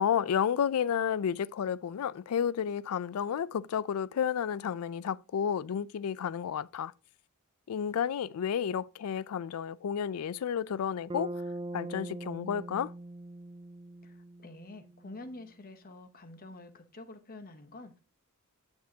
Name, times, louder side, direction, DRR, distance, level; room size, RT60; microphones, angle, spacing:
voice 1, 0.0-6.9 7.7-11.3 11.7-12.9, left 8 dB, 85° left, 0.4 m, -31 dB
Bass guitar, 11.1-15.2, right 1 dB, 20° right, 0.5 m, -42 dB
voice 2, 14.0-18.0, left 2 dB, 40° left, 1.0 m, -48 dB
9.4 x 6.1 x 2.8 m
head